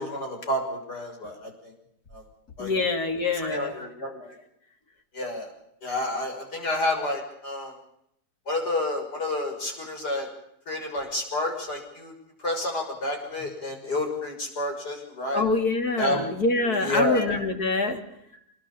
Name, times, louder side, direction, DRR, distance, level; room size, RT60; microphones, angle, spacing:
voice 1, 0.0-1.7 2.1-2.2 2.6-2.7 3.4-4.4 5.1-5.5 5.8-7.7 8.5-10.3 10.7-12.1 12.4-15.4 16.0-16.2 16.6-17.5 18.3-18.4, left 1 dB, 90° left, 2 dB, 7.0 m, -30 dB
voice 2, 2.6-3.7 15.3-18.0, left 3 dB, 70° left, 5 dB, 3.5 m, -25 dB
27.0 x 21.0 x 7.2 m, 0.76 s
omnidirectional pair, 1.7 m